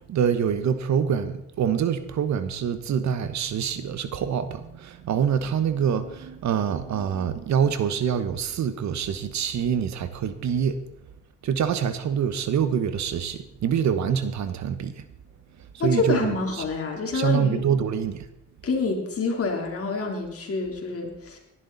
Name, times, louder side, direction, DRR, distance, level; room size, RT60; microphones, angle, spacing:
voice 1, 0.1-10.8 11.4-15.0 15.7-16.6 17.1-18.3, right 8 dB, 65° right, 1.3 m, -25 dB
voice 2, 15.8-17.6 18.6-21.4, left 4 dB, 50° left, 3.5 m, -27 dB
18.0 x 11.5 x 4.1 m
cardioid pair, 90°, 30 cm